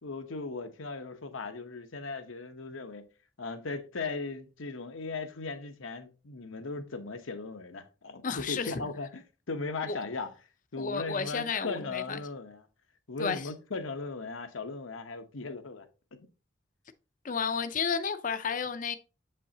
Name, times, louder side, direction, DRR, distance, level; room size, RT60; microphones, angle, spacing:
voice 1, 0.0-3.1 3.4-10.3 10.7-12.6 13.1-15.8 16.1-16.2, left 3 dB, 90° left, 1.0 m, -38 dB
voice 2, 8.2-8.7 9.9-10.0 10.8-12.2 13.2-13.4 17.2-19.0, left 5 dB, 40° left, 0.5 m, -32 dB
7.4 x 5.5 x 2.8 m
head